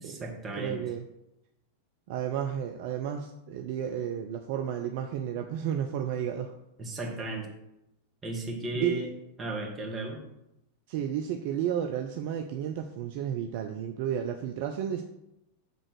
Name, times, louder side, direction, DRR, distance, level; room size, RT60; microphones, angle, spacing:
voice 1, 0.0-0.8 6.8-7.5 8.2-9.1 9.4-10.2, right 2 dB, 20° right, -1 dB, 2.0 m, -35 dB
voice 2, 0.6-1.0 2.1-6.5 8.7-9.0 10.9-15.0, right 9 dB, 50° right, 4 dB, 0.5 m, -32 dB
6.8 x 3.7 x 6.2 m, 0.87 s
figure-of-eight pair, 90°, 0 cm